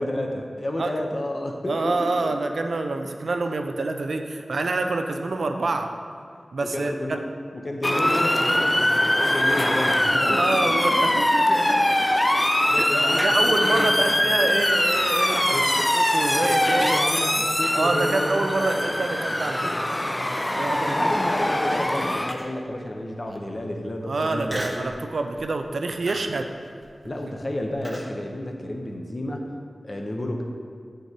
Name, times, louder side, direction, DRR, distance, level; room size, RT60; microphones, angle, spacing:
voice 1, 0.0-2.3 6.6-7.2 7.5-10.8 12.7-14.3 15.5-15.9 16.4-19.0 19.6-19.8 20.8-24.9 26.1-26.2 27.0-29.5 29.8-30.4, left 1 dB, 45° left, 2 dB, 0.6 m, -31 dB
voice 2, 1.7-5.9 6.5-7.2 10.2-11.9 12.6-17.0 17.7-19.7 20.6-21.1 24.1-26.5, right 3 dB, 80° right, 5 dB, 0.4 m, -27 dB
Motor vehicle (road) / Siren, 7.8-22.3, left 1 dB, 20° left, 0.3 m, -22 dB
Human voice, 22.3-22.7 23.3-23.4 24.5-24.9 25.4-25.6 26.1-28.1, equal, 10° right, 0.8 m, -36 dB
7.9 x 3.7 x 4.1 m, 2.3 s
cardioid pair, 50°, 0 cm